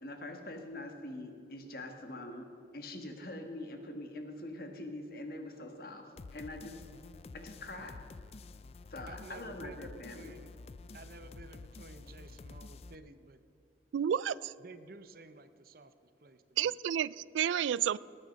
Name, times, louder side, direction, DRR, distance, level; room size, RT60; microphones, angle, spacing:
voice 1, 0.0-6.8 7.3-8.0 8.9-10.3, left 1 dB, 55° left, 1.6 m, -44 dB
sound 1, 6.2-12.9, left 3 dB, 35° left, 0.3 m, -50 dB
voice 2, 9.1-10.5 10.9-13.4 14.6-16.8, right 3 dB, 50° right, 0.7 m, -53 dB
voice 3, 13.9-14.5 16.6-18.0, right 9 dB, 90° right, 0.3 m, -31 dB
19.5 x 8.9 x 5.3 m
head